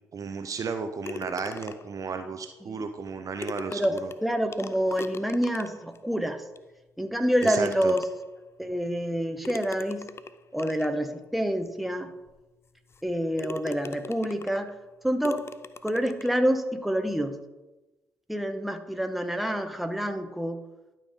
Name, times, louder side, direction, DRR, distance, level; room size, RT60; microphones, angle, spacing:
voice 1, 0.1-4.1 7.4-7.9, right 5 dB, 45° right, 8 dB, 0.6 m, -34 dB
sound 1, 1.0-2.0 3.1-3.2 3.4-6.0 6.6-6.7 7.4-8.4 9.4-11.0 11.7-11.8 12.3-12.4 12.9-13.1 13.4-14.7 15.2-16.4, left 4 dB, 30° left, 0.5 m, -40 dB
voice 2, 4.2-6.4 7.0-8.0 8.6-10.1 10.5-12.1 13.0-14.7 15.0-15.4 15.8-17.4 18.3-20.6, equal, ahead, 7 dB, 1.0 m, -27 dB
12.0 x 5.6 x 3.7 m, 1.1 s
figure-of-eight pair, 40°, 8 cm